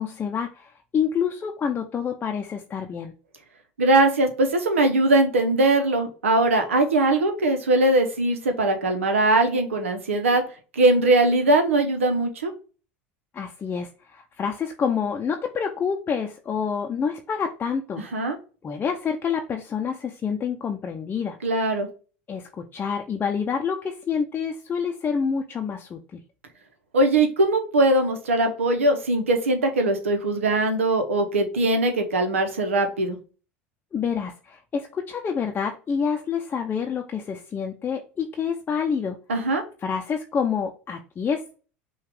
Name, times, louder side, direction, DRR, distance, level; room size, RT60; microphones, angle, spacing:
voice 1, 0.0-3.1 13.3-18.0 18.6-21.4 22.3-26.0 33.9-39.2 39.8-41.6, left 6 dB, 30° left, 3 dB, 0.6 m, -27 dB
voice 2, 3.8-10.4 10.7-12.5 18.0-18.4 21.4-21.9 26.9-33.2 39.3-39.6, right 2 dB, 90° right, 6 dB, 0.8 m, -21 dB
5.7 x 2.4 x 3.5 m, 0.36 s
hypercardioid pair, 80°, 7 cm